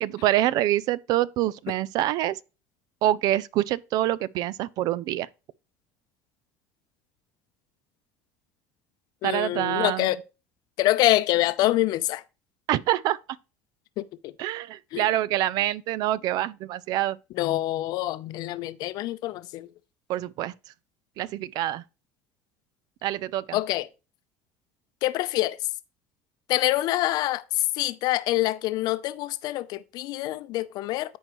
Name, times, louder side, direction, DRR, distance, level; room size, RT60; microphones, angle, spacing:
voice 1, 0.0-2.4 3.0-5.3 9.2-10.1 12.7-13.2 14.4-17.2 20.1-20.5 21.2-21.8 23.0-23.6, right 14 dB, 65° right, 0.5 m, -26 dB
voice 2, 9.2-10.2 10.8-12.2 14.0-14.3 14.9-15.0 17.4-19.7 23.5-23.9 25.0-25.6 26.5-27.4 27.8-31.2, left 16 dB, 65° left, 0.6 m, -26 dB
13.5 x 4.6 x 3.1 m
supercardioid pair, 80°, 7 cm